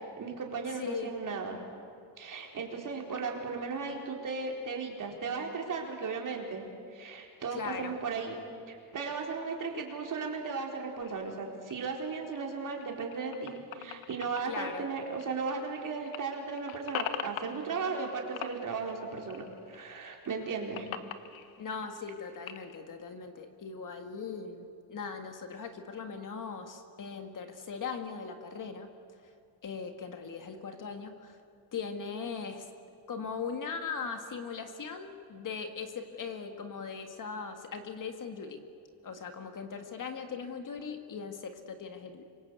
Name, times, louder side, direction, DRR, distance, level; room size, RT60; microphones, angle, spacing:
voice 1, 0.2-1.6 2.2-6.6 6.9-8.4 8.7-20.9, right 4 dB, 40° right, 1 dB, 4.4 m, -36 dB
voice 2, 0.8-1.1 7.5-7.9 14.5-14.8 21.6-28.9 29.6-31.4 31.7-32.7 33.1-38.6 39.0-42.2, left 5 dB, 40° left, 6 dB, 1.9 m, -39 dB
sound 1, 11.0-15.8 16.0-18.1 18.4-19.8 20.1-22.8, left 9 dB, 90° left, 1.5 m, -42 dB
27.0 x 24.0 x 8.4 m, 2.3 s
cardioid pair, 145°, 46 cm